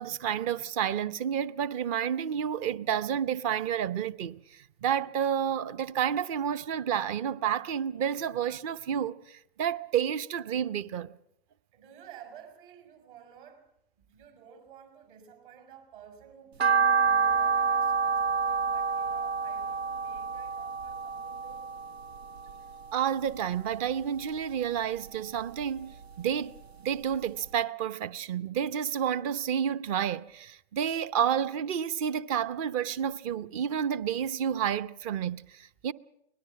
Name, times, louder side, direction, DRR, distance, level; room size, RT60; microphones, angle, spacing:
voice 1, 0.0-11.2 22.9-26.5 26.8-35.9, right 9 dB, 35° right, 0.8 m, -30 dB
voice 2, 11.7-13.7 14.0-21.6, right 9 dB, 55° right, 5.7 m, -52 dB
sound 1, 16.6-22.9 23.3-24.4 24.8-26.2 26.6-26.7 27.1-27.2 27.5-27.6, right 5 dB, 90° right, 0.8 m, -28 dB
24.0 x 19.5 x 5.9 m
hypercardioid pair, 120°, 31 cm